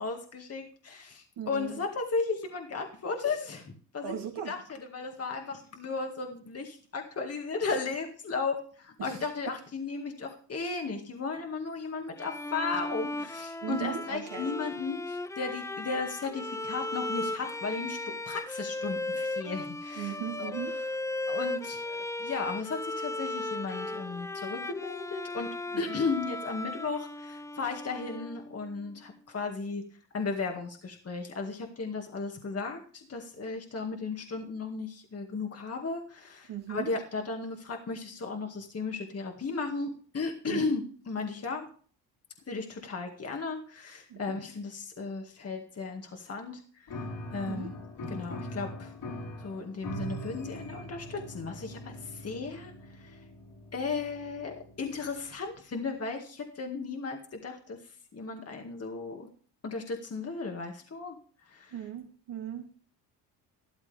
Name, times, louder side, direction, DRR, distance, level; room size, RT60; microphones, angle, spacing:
voice 1, 0.0-4.1 4.5-18.0 18.3-20.5 21.3-25.5 25.8-29.9 30.1-41.7 42.5-47.0 47.3-47.7 48.1-49.0 49.4-53.1 53.7-57.8 58.1-59.3 59.6-61.2 61.5-61.7, left 4 dB, 35° left, 3 dB, 2.0 m, -35 dB
voice 2, 1.4-1.8 4.0-4.5 9.0-9.2 13.6-14.5 20.0-20.7 25.7-26.0 36.5-36.9 40.5-40.7 44.1-44.2 47.5-47.7 61.7-62.7, right 9 dB, 70° right, 2 dB, 2.8 m, -37 dB
Bowed string instrument, 12.2-28.7, left 2 dB, 5° left, 0.4 m, -36 dB
Piano, 46.9-55.4, equal, 65° left, 4.4 m, -42 dB
13.0 x 11.5 x 3.5 m, 0.42 s
cardioid pair, 95°, 43 cm